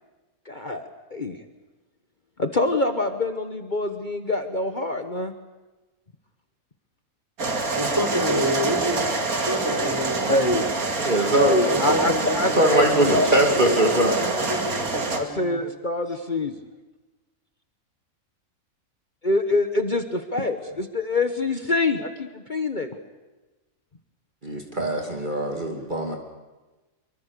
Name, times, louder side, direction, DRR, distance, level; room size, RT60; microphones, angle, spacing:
voice 1, 0.5-1.4 2.4-5.3 10.3-10.7 11.4-12.8 13.1-13.3 15.1-16.5 19.2-22.9, left 2 dB, 35° left, 7 dB, 1.3 m, -25 dB
sound 1, 7.4-15.2, right 3 dB, 80° right, 2.8 m, -26 dB
voice 2, 7.7-9.1 9.5-10.7 11.6-15.6, equal, 15° right, 2 dB, 3.7 m, -28 dB
voice 3, 11.0-11.6 12.5-14.2 24.4-26.2, right 1 dB, 35° right, 2 dB, 2.7 m, -21 dB
25.0 x 24.0 x 6.8 m, 1.1 s
omnidirectional pair, 1.5 m